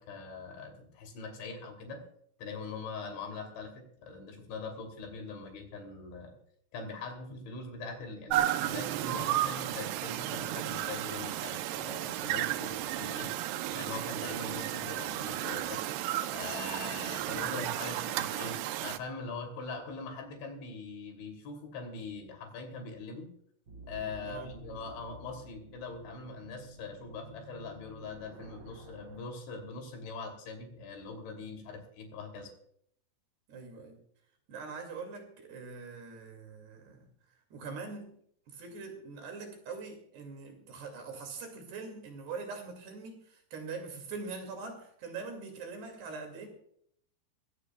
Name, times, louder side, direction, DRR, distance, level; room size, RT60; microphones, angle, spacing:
voice 1, 0.0-2.1 2.4-6.3 6.7-13.3 13.7-15.8 16.3-23.3 23.9-32.5, left 4 dB, 70° left, 3 dB, 5.3 m, -42 dB
sound 1, 8.3-19.0, right 13 dB, 85° right, 2.4 m, -33 dB
sound 2, 23.7-29.2, right 1 dB, 40° right, 1.9 m, -51 dB
voice 2, 33.5-34.0 34.5-37.0 37.5-38.2 38.5-46.5, right 4 dB, 60° right, 4 dB, 4.3 m, -43 dB
21.5 x 17.0 x 2.4 m, 0.68 s
omnidirectional pair, 5.6 m